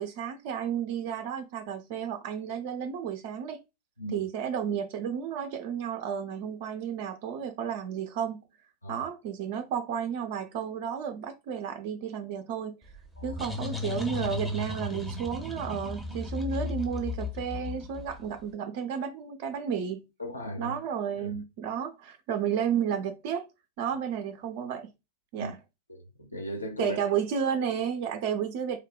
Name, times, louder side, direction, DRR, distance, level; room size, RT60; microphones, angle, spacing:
voice 1, 0.0-3.6 4.1-8.4 8.9-12.8 13.2-20.1 20.6-23.5 23.8-24.9 25.3-25.6 26.8-28.8, right 8 dB, 45° right, 0.4 m, -32 dB
sound 1, 12.9-18.4, left 3 dB, 5° left, 0.6 m, -35 dB
voice 2, 20.2-20.8 21.2-21.3 25.4-25.5 25.9-27.0, equal, 80° left, 0.6 m, -37 dB
3.0 x 2.0 x 2.2 m
figure-of-eight pair, 90°, 0 cm